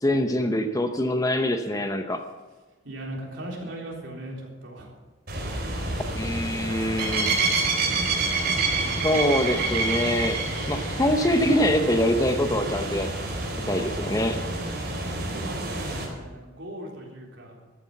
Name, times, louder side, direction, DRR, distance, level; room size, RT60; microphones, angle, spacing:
voice 1, 0.0-2.3 6.1-7.3 9.0-10.4 10.7-13.1 13.7-14.4, left 1 dB, 15° left, 7 dB, 0.8 m, -24 dB
voice 2, 2.8-4.9 15.1-17.6, right 1 dB, 65° right, -2 dB, 3.7 m, -38 dB
sound 1, 5.3-16.0, right 3 dB, 50° right, 4.1 m, -28 dB
13.5 x 9.6 x 7.1 m, 1.3 s
head